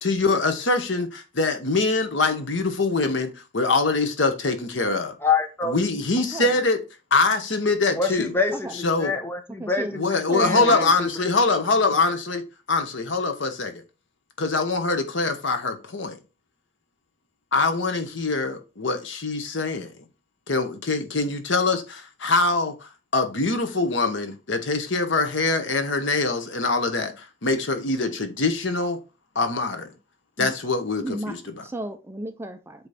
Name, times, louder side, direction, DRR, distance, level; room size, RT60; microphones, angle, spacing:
voice 1, 0.0-5.1 5.6-6.8 7.1-8.3 8.8-9.1 10.0-12.4 12.7-13.7 14.4-16.2 17.5-19.9 20.5-22.7 23.1-29.0 29.3-29.9 30.4-31.6, left 3 dB, 70° left, 1.1 m, -23 dB
voice 2, 5.2-5.8 7.9-11.3, left 4 dB, 10° left, 0.8 m, -26 dB
voice 3, 6.2-6.5 8.6-8.7 9.6-10.0 10.3-10.8 30.4-30.5 31.0-31.4 31.6-32.9, right 1 dB, 15° right, 0.4 m, -33 dB
8.0 x 3.1 x 4.2 m
head